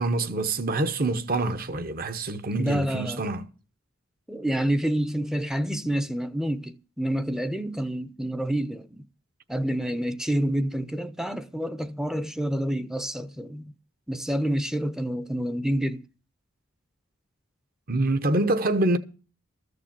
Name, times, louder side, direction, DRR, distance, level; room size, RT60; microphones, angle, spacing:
voice 1, 0.0-3.5 17.9-19.0, right 2 dB, 45° right, 1.0 m, -26 dB
voice 2, 2.6-3.2 4.3-9.0 9.5-13.7 14.1-16.0, right 1 dB, 5° right, 0.6 m, -28 dB
14.0 x 6.8 x 7.4 m
head